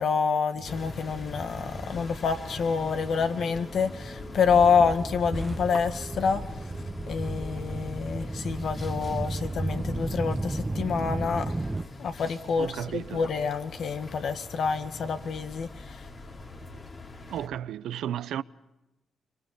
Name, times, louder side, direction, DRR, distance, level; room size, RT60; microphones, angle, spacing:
voice 1, 0.0-6.7 7.1-11.7 12.0-16.1, left 6 dB, 70° left, 1.8 m, -27 dB
sound 1, 0.5-11.8, right 2 dB, 20° right, 1.0 m, -35 dB
sound 2, 0.7-17.5, left 3 dB, 45° left, 3.1 m, -43 dB
voice 2, 12.6-13.2 17.3-18.4, right 10 dB, 85° right, 0.7 m, -33 dB
25.5 x 24.0 x 5.3 m
cardioid pair, 70°, 0 cm